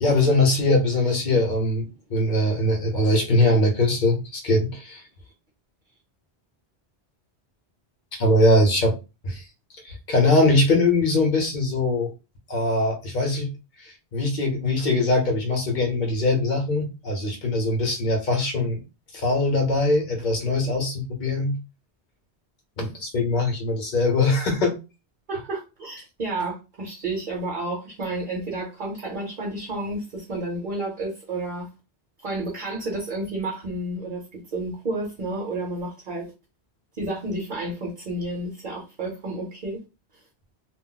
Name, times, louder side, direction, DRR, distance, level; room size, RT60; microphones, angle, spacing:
voice 1, 0.0-5.0 8.1-9.0 9.2-9.4 9.8-12.1 12.5-13.5 13.8-18.8 19.1-21.5 22.8-24.7, left 2 dB, 50° left, 3 dB, 0.8 m, -22 dB
voice 2, 25.3-31.7 32.2-36.3 36.9-39.8, right 2 dB, 50° right, -1 dB, 0.9 m, -31 dB
2.3 x 2.0 x 3.8 m, 0.29 s
omnidirectional pair, 1.1 m